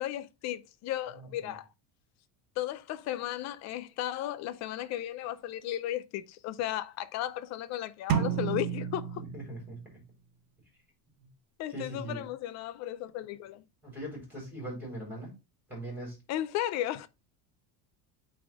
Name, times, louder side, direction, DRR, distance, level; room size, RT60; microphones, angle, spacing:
voice 1, 0.0-1.7 2.6-9.2 11.6-13.6 16.3-17.1, left 13 dB, 40° left, 0.5 m, -35 dB
voice 2, 1.1-1.5 9.3-9.8 11.2-11.3 11.7-12.3 13.8-15.3 15.7-16.2, right 1 dB, 5° right, 4.2 m, -41 dB
sound 1, 8.1-10.0, right 8 dB, 50° right, 1.0 m, -31 dB
8.5 x 3.5 x 3.5 m
cardioid pair, 165°, 46 cm